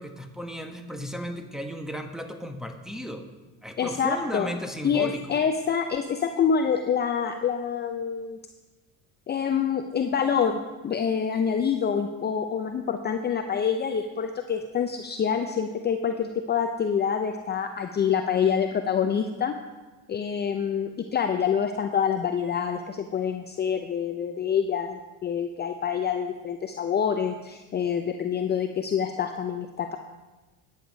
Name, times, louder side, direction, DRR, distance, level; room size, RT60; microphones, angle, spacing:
voice 1, 0.0-3.3 3.6-5.2, equal, ahead, 6 dB, 1.2 m, -35 dB
voice 2, 3.8-4.5 4.8-8.4 9.3-19.5 20.1-30.0, left 7 dB, 25° left, 6 dB, 0.6 m, -26 dB
10.0 x 8.3 x 5.3 m, 1.2 s
hypercardioid pair, 85°, 38 cm